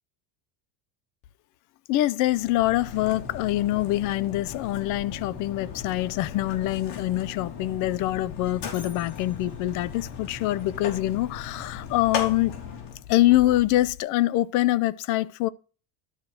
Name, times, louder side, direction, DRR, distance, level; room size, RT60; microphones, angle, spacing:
voice 1, 1.9-12.5 13.1-15.5, left 15 dB, 40° left, 0.5 m, -24 dB
Mechanisms, 2.3-13.1, left 6 dB, 60° left, 3.3 m, -37 dB
12.0 x 4.8 x 6.0 m
cardioid pair, 170°, 47 cm